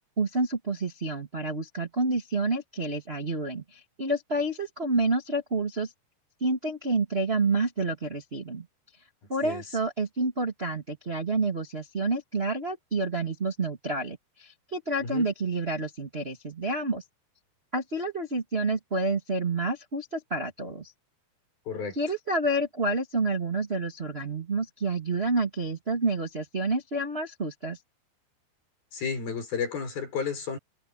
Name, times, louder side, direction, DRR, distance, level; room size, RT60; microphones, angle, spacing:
voice 1, 0.2-5.9 6.4-8.6 9.3-17.0 17.7-20.9 21.9-27.8, right 2 dB, 35° right, 1.0 m, -29 dB
voice 2, 21.7-22.0 28.9-30.6, left 6 dB, 55° left, 8.4 m, -32 dB
omnidirectional pair, 5.2 m